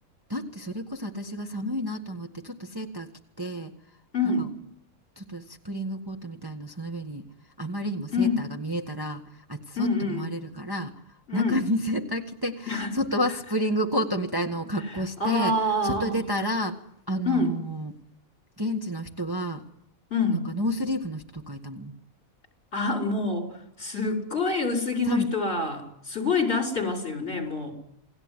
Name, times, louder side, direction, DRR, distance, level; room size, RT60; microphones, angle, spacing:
voice 1, 0.3-3.1 3.4-3.7 4.4-4.5 5.2-7.2 7.6-15.6 15.8-16.8 17.1-17.9 18.6-19.6 20.3-21.9 25.1-25.3, equal, 15° right, 2 dB, 1.6 m, -30 dB
voice 2, 4.1-4.5 8.1-8.4 9.8-10.3 11.3-11.6 12.7-12.9 14.9-16.2 17.2-17.6 20.1-20.5 22.7-23.5 23.8-27.7, left 3 dB, 50° left, 5 dB, 5.8 m, -26 dB
29.0 x 20.0 x 9.8 m, 0.77 s
omnidirectional pair, 1.5 m